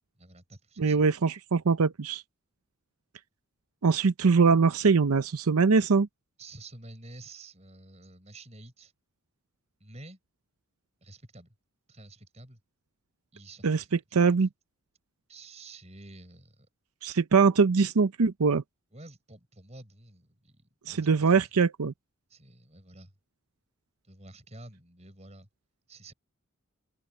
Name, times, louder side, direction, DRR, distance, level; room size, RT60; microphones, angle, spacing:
voice 1, 0.2-1.0 6.4-8.9 9.8-10.2 11.0-11.5 11.9-12.6 13.3-14.2 15.3-16.7 18.9-21.3 22.3-23.1 24.0-25.5 25.9-26.1, right 2 dB, 30° right, 4.8 m, -50 dB
voice 2, 0.8-2.2 3.8-6.1 13.6-13.8 14.1-14.5 17.0-18.6 20.9-21.9, right 5 dB, 85° right, 0.6 m, -22 dB
head